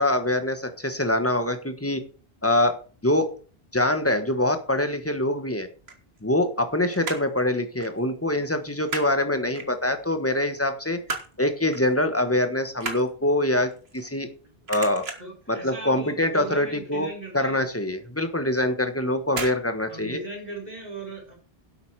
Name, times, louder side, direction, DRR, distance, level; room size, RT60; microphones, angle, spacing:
voice 1, 0.0-2.0 2.4-3.3 3.7-5.7 6.2-11.0 11.4-14.3 14.7-15.0 15.5-17.1 17.3-20.2, left 1 dB, 15° left, 8 dB, 1.3 m, -24 dB
sound 1, 5.8-6.7 6.9-7.4 7.8-8.0 8.3-9.1 9.5-10.1 10.6-11.4 11.7-11.9 12.3-14.4 14.7-15.4 15.9-16.2 16.4-16.5 16.9-17.0 17.5-17.6 18.4-18.7 19.3-19.6 19.9-20.0, right 3 dB, 80° right, 2.0 m, -35 dB
voice 2, 15.2-17.6 19.9-21.3, right 3 dB, 40° right, -2 dB, 4.7 m, -38 dB
11.5 x 8.1 x 4.7 m, 0.39 s
omnidirectional pair, 1.0 m